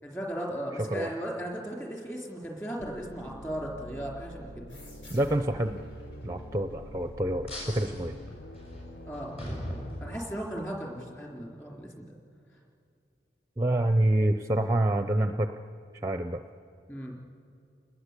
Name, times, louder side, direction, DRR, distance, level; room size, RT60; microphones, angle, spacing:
voice 1, 0.0-4.7 9.1-9.4 10.0-12.1 16.9-17.2, equal, 15° left, -1 dB, 3.7 m, -37 dB
voice 2, 0.8-1.1 5.1-5.8 6.2-8.2 13.6-15.5 16.0-16.4, right 1 dB, 15° right, 8 dB, 0.6 m, -27 dB
sound 1, 2.8-10.2, equal, 65° left, 1.0 m, -46 dB
sound 2, 4.7-7.9, equal, 90° left, 4.2 m, -51 dB
sound 3, 7.5-10.7, equal, 35° left, 6.5 m, -40 dB
28.5 x 20.5 x 8.3 m, 2.5 s
head